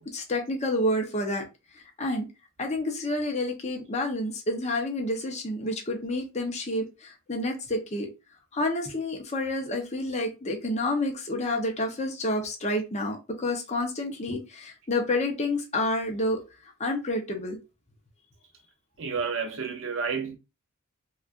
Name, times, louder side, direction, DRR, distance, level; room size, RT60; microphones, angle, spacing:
voice 1, 0.0-1.5 1.7-2.3 2.6-8.1 8.5-16.4 16.8-17.6, left 1 dB, 30° left, 0.8 m, -29 dB
voice 2, 19.0-20.4, right 5 dB, 60° right, 0.6 m, -30 dB
4.2 x 2.4 x 2.5 m
head